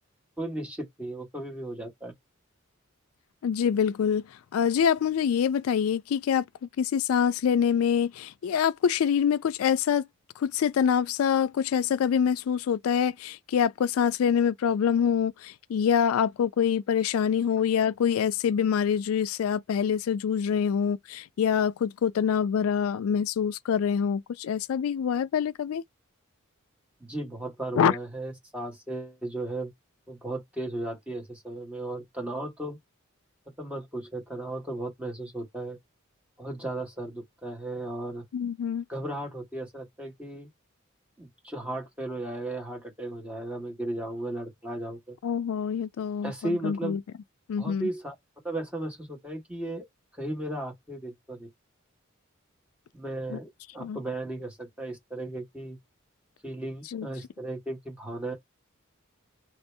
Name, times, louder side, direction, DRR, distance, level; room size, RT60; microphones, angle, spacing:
voice 1, 0.4-2.1 27.0-29.7 30.1-32.8 33.6-35.8 36.4-38.2 38.9-40.5 41.2-45.1 46.2-47.0 47.6-48.1 48.4-49.8 50.1-51.5 52.9-55.8 56.4-58.3, right 1 dB, 5° right, 1.2 m, -35 dB
voice 2, 3.4-10.1 10.4-25.8 27.8-27.9 38.3-38.9 45.2-47.0 47.5-47.9 53.3-53.4 53.8-54.0 56.9-57.1, left 7 dB, 80° left, 0.3 m, -25 dB
3.0 x 2.7 x 3.2 m
head